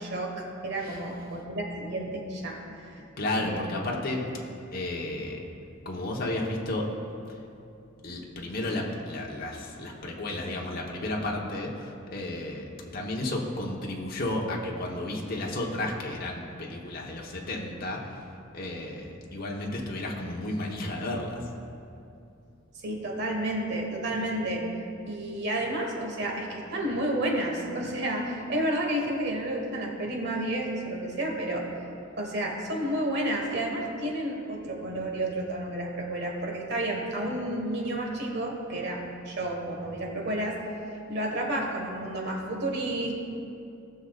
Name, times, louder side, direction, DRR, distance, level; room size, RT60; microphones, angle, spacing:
voice 1, 0.0-2.6 3.4-3.7 22.8-24.7 25.1-31.6 32.2-40.6 41.1-43.1, right 1 dB, 55° right, 0 dB, 1.5 m, -31 dB
voice 2, 0.8-1.2 3.2-4.4 4.7-5.4 5.8-6.9 8.0-18.3 18.5-21.4, left 1 dB, 50° left, -2 dB, 1.1 m, -33 dB
18.0 x 6.4 x 2.4 m, 2.6 s
head